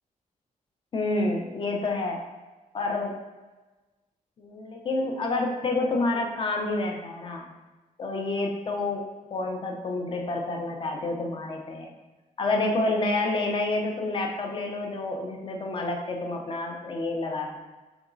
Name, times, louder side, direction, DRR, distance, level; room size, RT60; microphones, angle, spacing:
voice 1, 0.9-2.2 2.7-3.1 4.4-7.5 8.0-9.0 9.3-11.9 12.4-17.6, left 2 dB, 40° left, 1 dB, 0.7 m, -28 dB
3.9 x 3.5 x 3.9 m, 1.2 s
wide cardioid pair, 160°, 14 cm